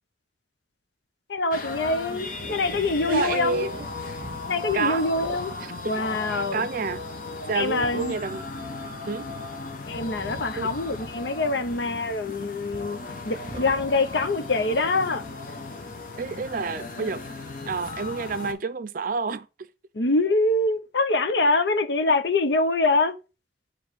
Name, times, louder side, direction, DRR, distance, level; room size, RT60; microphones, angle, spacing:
voice 1, 1.3-3.7 4.5-5.5 5.8-6.7 7.5-8.2 9.9-13.0 13.2-15.2 19.9-23.2, left 2 dB, 75° left, 0.7 m, -24 dB
sound 1, 1.4-4.5 4.7-5.6 6.0-6.5 7.8-8.2 8.8-9.0 9.3-9.7 10.0-12.3 12.7-13.0 13.5-13.9, right 2 dB, 25° right, 0.8 m, -43 dB
sound 2, 1.5-18.5, left 3 dB, 50° left, 0.9 m, -36 dB
voice 2, 3.1-3.9 4.7-5.1 5.6-6.0 6.3-7.0 7.5-8.4 9.1-9.4 10.6-10.7 16.2-17.2 17.7-19.5, right 4 dB, 50° right, 0.5 m, -29 dB
6.9 x 3.1 x 4.6 m
head